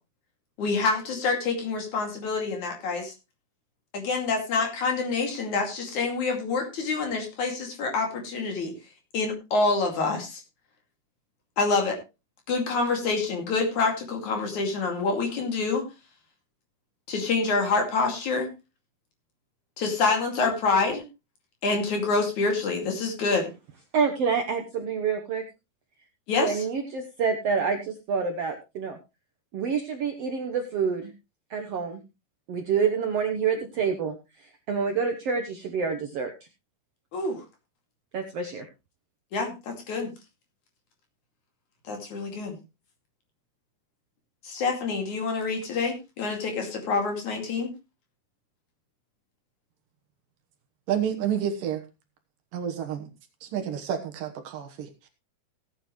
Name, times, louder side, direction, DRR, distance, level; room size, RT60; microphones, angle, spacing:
voice 1, 0.6-3.1 3.9-8.7 9.1-10.4 11.6-12.0 12.5-15.9 17.1-18.5 19.8-21.0 21.6-23.5 26.3-26.6 37.1-37.4 39.3-40.1 41.9-42.6 44.4-47.7, left 4 dB, 50° left, 3 dB, 3.5 m, -27 dB
voice 2, 23.9-25.4 26.4-29.0 29.5-31.1 31.5-32.0 32.5-36.3 38.1-38.7, right 6 dB, 85° right, 4 dB, 1.3 m, -27 dB
voice 3, 50.9-51.8 52.5-53.1 53.4-54.9, right 9 dB, 65° right, 5 dB, 2.7 m, -29 dB
17.5 x 8.9 x 3.1 m, 0.26 s
omnidirectional pair, 4.5 m